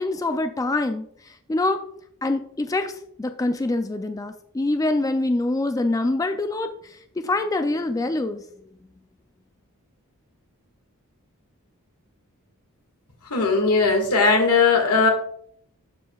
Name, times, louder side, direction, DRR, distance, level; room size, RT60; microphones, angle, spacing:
voice 1, 0.0-1.8 2.2-8.4, left 2 dB, 15° left, 8 dB, 0.3 m, -25 dB
voice 2, 13.3-15.1, left 4 dB, 85° left, 2 dB, 1.8 m, -18 dB
11.5 x 4.8 x 2.3 m, 0.65 s
head